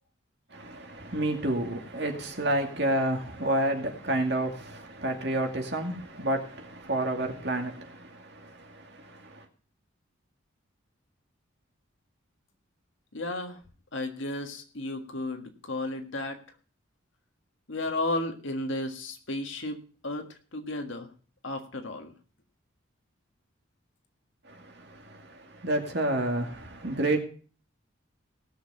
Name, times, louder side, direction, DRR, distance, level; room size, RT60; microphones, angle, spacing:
voice 1, 0.5-9.5 24.4-27.2, right 1 dB, 55° right, 2.4 m, -30 dB
voice 2, 13.1-13.6 13.9-16.4 17.7-21.1 21.4-22.1, left 2 dB, 70° left, 1.7 m, -33 dB
18.0 x 6.6 x 5.5 m
head